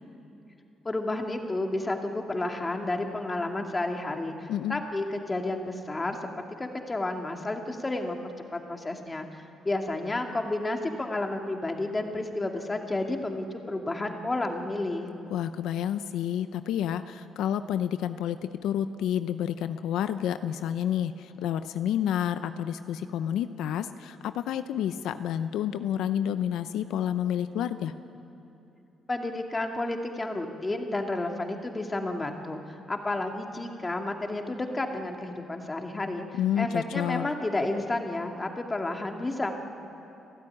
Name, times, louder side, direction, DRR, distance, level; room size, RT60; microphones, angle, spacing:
voice 1, 0.8-6.2 6.6-15.1 29.1-36.2 36.6-39.5, left 2 dB, 20° left, 3 dB, 2.3 m, -31 dB
voice 2, 4.5-4.8 15.3-27.9 36.3-37.3, left 10 dB, 85° left, 11 dB, 0.6 m, -29 dB
29.5 x 12.5 x 9.9 m, 2.9 s
cardioid pair, 90°, 0 cm